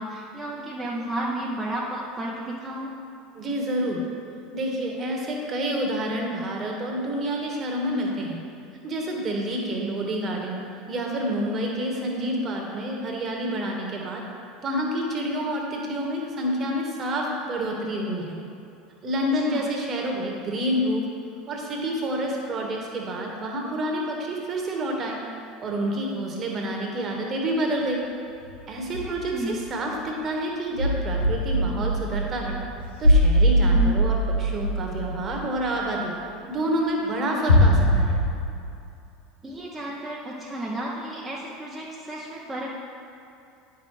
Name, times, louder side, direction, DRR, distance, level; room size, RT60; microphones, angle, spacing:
voice 1, 0.0-2.9 19.2-19.6 29.0-29.6 33.7-34.0 39.4-42.7, right 1 dB, 15° right, -5 dB, 0.9 m, -32 dB
voice 2, 3.3-4.0 4.5-8.4 8.8-10.6 10.9-14.2 14.6-18.4 19.0-21.1 21.5-25.2 25.6-28.0 28.7-32.6 33.0-36.1 36.5-38.2, right 1 dB, 35° right, 0 dB, 1.5 m, -28 dB
sound 1, 28.5-28.6 28.8-29.4 29.6-29.7 30.8-35.8 37.5-38.2, equal, 85° left, 1.2 m, -21 dB
9.3 x 6.1 x 3.3 m, 2.6 s
figure-of-eight pair, 75°, 0 cm